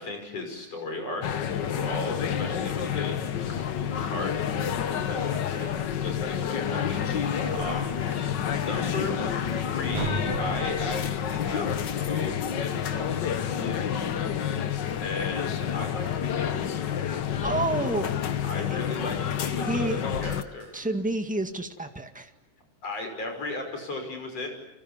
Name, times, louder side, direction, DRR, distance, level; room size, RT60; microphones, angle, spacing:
voice 1, 0.0-3.6 4.0-5.6 6.0-8.0 8.3-14.3 15.0-16.6 18.4-20.8 22.8-24.5, left 2 dB, 50° left, 4 dB, 6.8 m, -36 dB
sound 1, 1.2-20.4, left 8 dB, 70° left, 1.0 m, -29 dB
sound 2, 4.9-14.8 15.2-15.3 15.6-21.6, right 2 dB, 55° right, 3.7 m, -43 dB
voice 2, 7.4-7.9 17.4-18.1 18.7-18.8 19.6-20.0 20.7-22.3, right 2 dB, 5° right, 6 dB, 0.8 m, -30 dB
29.5 x 25.5 x 7.4 m, 0.94 s
omnidirectional pair, 3.6 m